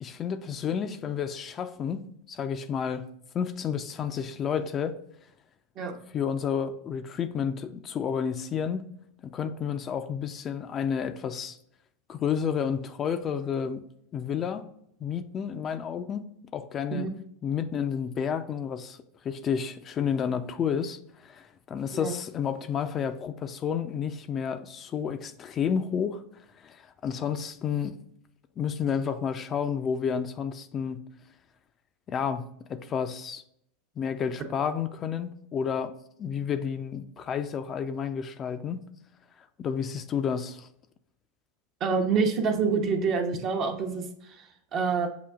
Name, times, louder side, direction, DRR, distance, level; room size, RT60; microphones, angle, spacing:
voice 1, 0.0-2.0 2.3-3.1 3.3-5.0 6.1-8.9 9.3-11.6 12.1-13.8 14.1-14.6 15.0-17.1 17.4-19.0 19.2-26.2 26.6-27.9 28.6-31.0 32.1-33.4 34.0-35.9 36.2-38.8 39.6-40.7, left 7 dB, 35° left, 0.4 m, -30 dB
voice 2, 41.8-45.1, right 5 dB, 45° right, 0.8 m, -27 dB
6.7 x 2.5 x 2.3 m
hypercardioid pair, 90°, 0 cm